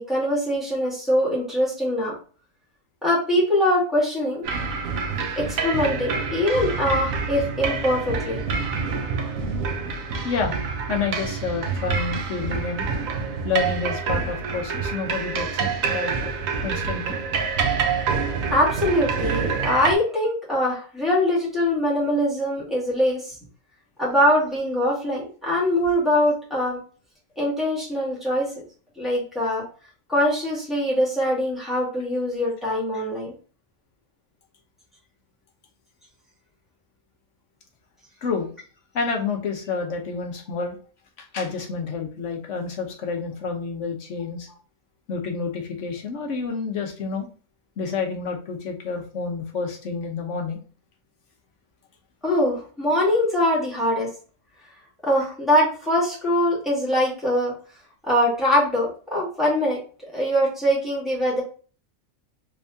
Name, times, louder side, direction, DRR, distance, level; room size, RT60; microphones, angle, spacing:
voice 1, 0.0-2.1 3.0-4.5 5.4-8.4 18.5-23.4 24.0-26.8 27.4-28.5 29.0-29.6 30.1-33.3 52.2-54.1 55.0-57.5 58.1-59.8 60.1-61.4, left 1 dB, ahead, -6 dB, 1.9 m, -22 dB
sound 1, 4.4-20.0, right 5 dB, 80° right, 1.1 m, -27 dB
voice 2, 10.2-10.6 10.9-12.9 13.4-16.3 16.6-17.2 38.2-38.5 38.9-40.8 41.2-44.5 45.1-47.3 47.8-50.6, left 5 dB, 65° left, 2 dB, 1.2 m, -29 dB
3.5 x 3.4 x 2.6 m, 0.40 s
omnidirectional pair, 1.4 m